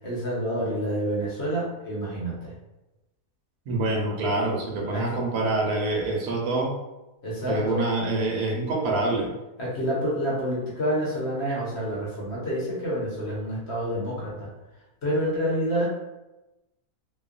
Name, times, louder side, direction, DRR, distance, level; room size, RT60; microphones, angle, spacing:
voice 1, 0.0-2.5 4.9-5.2 7.2-7.8 9.6-14.5 15.0-15.9, equal, 55° left, -6 dB, 0.9 m, -28 dB
voice 2, 3.7-6.7 7.5-9.3, right 2 dB, 85° right, -1 dB, 1.1 m, -26 dB
2.9 x 2.1 x 2.4 m, 1.0 s
omnidirectional pair, 1.5 m